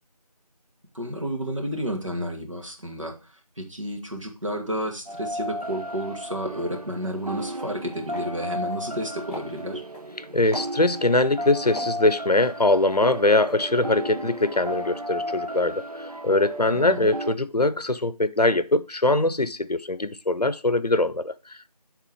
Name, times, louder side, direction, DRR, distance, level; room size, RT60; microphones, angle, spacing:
voice 1, 0.9-3.2 3.6-9.8 16.7-17.1, equal, 50° right, 1.8 m, -31 dB
sound 1, 5.1-17.3, equal, 65° right, 0.8 m, -34 dB
sound 2, 7.0-7.2 7.5-7.7 8.1-8.3 8.6-9.0 9.3-10.1 10.5-11.3 11.7-13.0 13.4-13.5, equal, 20° left, 3.7 m, -40 dB
voice 2, 10.2-21.6, left 2 dB, 75° left, 0.7 m, -22 dB
9.8 x 3.7 x 4.8 m
figure-of-eight pair, 175°, 20 cm